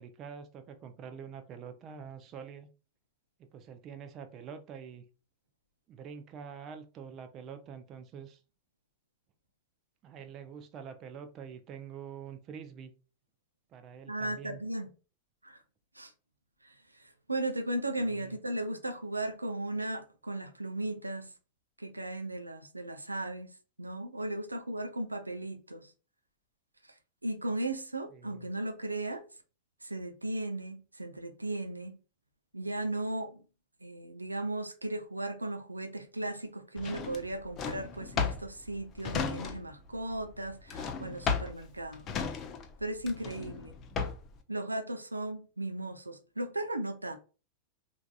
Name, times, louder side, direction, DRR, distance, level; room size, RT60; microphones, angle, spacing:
voice 1, 0.0-2.7 3.4-5.0 5.9-8.4 10.0-12.9 13.7-14.6 18.1-18.4 28.1-28.5, right 7 dB, 35° right, 0.5 m, -46 dB
voice 2, 14.1-14.9 15.4-15.6 15.9-16.1 16.6-21.3 21.8-25.9 27.2-29.2 29.8-32.0 32.5-33.4 33.8-42.2 42.8-43.8 44.5-47.2, right 1 dB, 85° right, 0.5 m, -36 dB
Drawer open or close, 36.8-39.9 40.1-44.4, left 5 dB, 30° left, 0.6 m, -35 dB
4.5 x 2.5 x 2.3 m
figure-of-eight pair, 90°, 0 cm